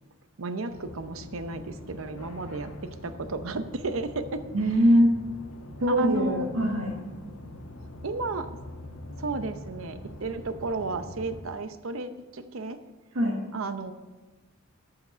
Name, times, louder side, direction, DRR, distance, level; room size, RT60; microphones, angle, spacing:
voice 1, 0.4-4.4 5.9-6.5 8.0-8.5 9.2-12.8 13.5-13.9, right 3 dB, 75° right, 10 dB, 0.7 m, -33 dB
sound 1, 0.7-11.4, left 1 dB, 85° left, 1.2 m, -43 dB
voice 2, 4.5-5.2 5.8-6.9 13.1-13.4, equal, 90° right, -4 dB, 1.6 m, -22 dB
13.0 x 5.9 x 5.6 m, 1.2 s
head